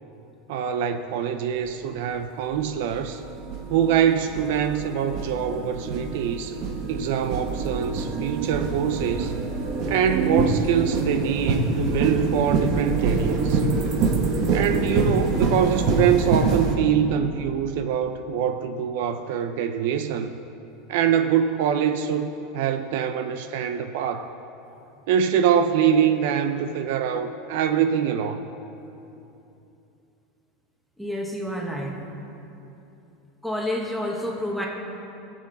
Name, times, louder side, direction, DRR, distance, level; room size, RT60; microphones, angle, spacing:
voice 1, 0.5-3.2 3.7-6.6 6.9-9.4 9.9-13.6 14.5-20.3 20.9-24.3 25.1-28.4, right 8 dB, 65° right, 8 dB, 0.5 m, -24 dB
sound 1, 1.6-1.7 2.5-16.7, right 3 dB, 45° right, 1.4 m, -25 dB
voice 2, 31.0-32.0 33.4-34.7, left 1 dB, ahead, -2 dB, 1.4 m, -29 dB
19.5 x 7.5 x 4.1 m, 2.9 s
supercardioid pair, 155°, 0 cm